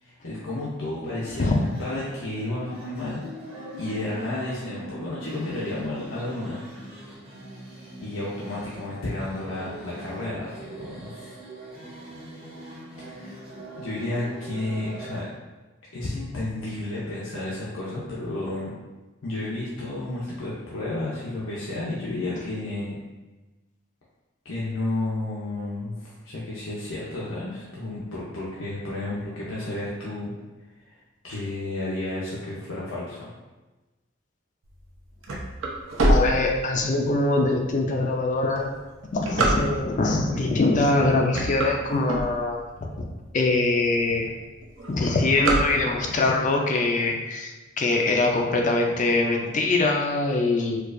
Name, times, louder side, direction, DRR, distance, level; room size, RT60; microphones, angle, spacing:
voice 1, 0.0-3.2 3.8-6.6 8.0-11.3 13.0-13.4 13.8-15.3 15.9-18.7 19.2-23.0 24.4-30.3 30.9-31.0 31.2-33.3, left 2 dB, 80° left, -7 dB, 0.7 m, -32 dB
sound 1, 1.2-15.2, right 1 dB, 30° right, 0.8 m, -42 dB
sound 2, 34.8-37.1 37.6-37.7 38.4-40.1 40.7-41.0 41.2-42.8 43.3-43.4 43.6-43.7 44.0-44.4 44.6-46.2, right 1 dB, 80° right, 0.6 m, -24 dB
voice 2, 36.1-38.7 39.1-42.6 43.0-43.1 43.3-44.3 44.9-50.8, left 2 dB, 40° left, 1 dB, 0.4 m, -23 dB
4.4 x 2.4 x 2.5 m, 1.1 s
head